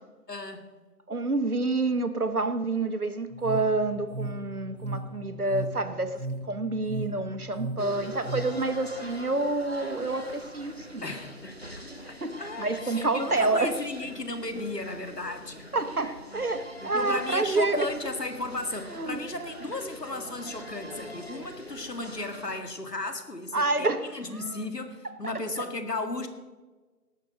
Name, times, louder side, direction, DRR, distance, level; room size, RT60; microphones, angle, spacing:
voice 1, 0.3-0.7 11.0-15.7 16.8-23.9 24.1-26.3, left 2 dB, 75° left, 7 dB, 1.9 m, -35 dB
voice 2, 1.1-11.1 12.2-13.7 15.7-17.9 18.9-19.7 23.5-24.6 25.0-25.1 25.6-25.7, right 3 dB, 65° right, 9 dB, 1.1 m, -28 dB
sound 1, 3.3-8.5, right 2 dB, 15° left, 3.9 m, -37 dB
sound 2, 7.8-22.6, equal, 40° left, 0.9 m, -44 dB
18.5 x 6.7 x 5.0 m, 1.3 s
figure-of-eight pair, 175°, 48 cm